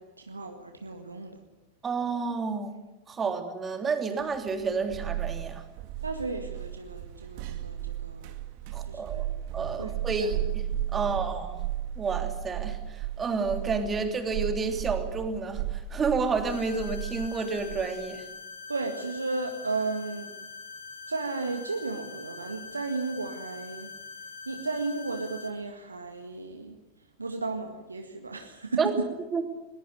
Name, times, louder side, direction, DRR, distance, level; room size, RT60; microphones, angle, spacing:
voice 1, 0.0-1.4 6.0-8.3 8.9-9.3 9.8-9.9 10.2-10.3 10.9-11.2 18.7-20.3 21.1-23.9 24.4-26.8 27.2-29.0, right 3 dB, 80° right, 5 dB, 1.8 m, -34 dB
voice 2, 1.8-2.7 3.1-5.6 8.7-9.3 9.5-10.4 10.9-11.6 12.0-18.3 28.8-29.0 29.3-29.4, right 4 dB, 20° right, 6 dB, 3.2 m, -30 dB
sound 1, 4.3-17.8, right 12 dB, 45° right, 2.0 m, -35 dB
sound 2, 16.5-25.5, left 5 dB, 65° left, 5.3 m, -44 dB
21.5 x 20.0 x 9.6 m, 1.0 s
figure-of-eight pair, 90°, 0 cm